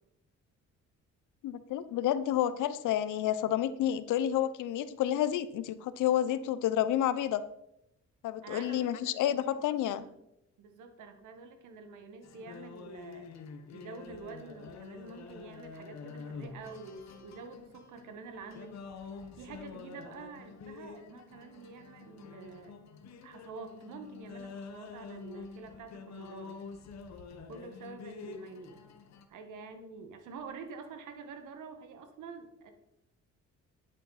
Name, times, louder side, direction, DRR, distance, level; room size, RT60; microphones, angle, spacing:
voice 1, 1.4-7.4 8.2-10.0, left 11 dB, 85° left, 14 dB, 0.8 m, -30 dB
voice 2, 8.4-9.6 9.9-10.1 10.6-13.3 13.7-18.8 19.3-22.7 23.2-26.5 27.5-28.8 29.3-32.7, right 4 dB, 80° right, 7 dB, 1.7 m, -47 dB
sound 1, 12.2-29.3, left 5 dB, 60° left, 1.3 m, -47 dB
11.0 x 9.0 x 4.2 m, 0.83 s
cardioid pair, 90°, 30 cm